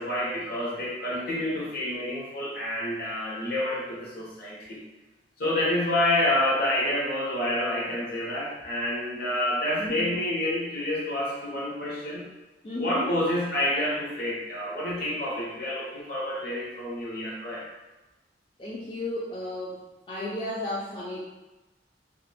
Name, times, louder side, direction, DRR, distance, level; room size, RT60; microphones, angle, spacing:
voice 1, 0.0-4.8 5.4-12.2 12.8-17.6, left 1 dB, 55° left, -5 dB, 0.8 m, -28 dB
voice 2, 9.8-10.2 12.6-13.1 18.6-19.8 20.1-21.2, left 1 dB, 30° left, -7 dB, 0.3 m, -33 dB
2.4 x 2.0 x 3.3 m, 1.1 s
head